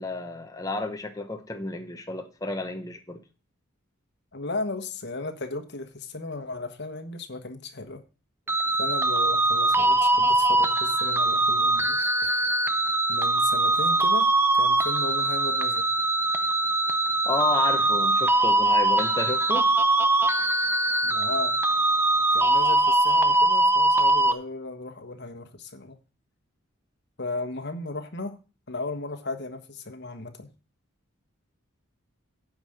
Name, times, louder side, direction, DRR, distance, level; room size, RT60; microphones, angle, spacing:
voice 1, 0.0-3.2 17.2-19.7, left 2 dB, 15° left, 4 dB, 0.8 m, -31 dB
voice 2, 4.3-8.0 8.8-12.5 13.1-14.3 14.5-15.9 21.0-21.5 22.3-26.0 27.2-28.4 28.7-30.5, left 2 dB, 55° left, 7 dB, 1.3 m, -35 dB
sound 1, 8.5-24.3, right 2 dB, 10° right, 0.5 m, -22 dB
9.5 x 5.0 x 7.9 m, 0.34 s
head